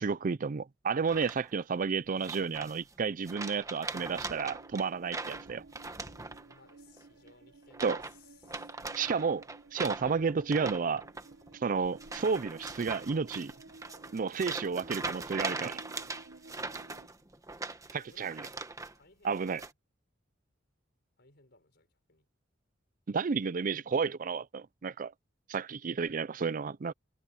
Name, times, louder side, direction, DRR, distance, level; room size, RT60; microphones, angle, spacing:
voice 1, 0.0-5.6 7.8-8.0 9.0-9.5 9.7-11.0 11.6-13.5 14.1-15.8 17.9-18.4 19.2-19.6 23.1-25.1 25.5-26.9, right 5 dB, 45° right, 0.5 m, -31 dB
sound 1, 1.1-1.6 2.2-2.9 3.3-6.7 7.0-7.3 7.7-8.2 8.4-18.9 19.3-19.7, right 3 dB, 20° right, 1.4 m, -41 dB
sound 2, 4.0-17.1, right 3 dB, 85° right, 1.3 m, -55 dB
voice 2, 6.4-8.7 18.0-18.4 18.9-19.5 21.2-22.3, left 3 dB, 60° left, 5.6 m, -62 dB
head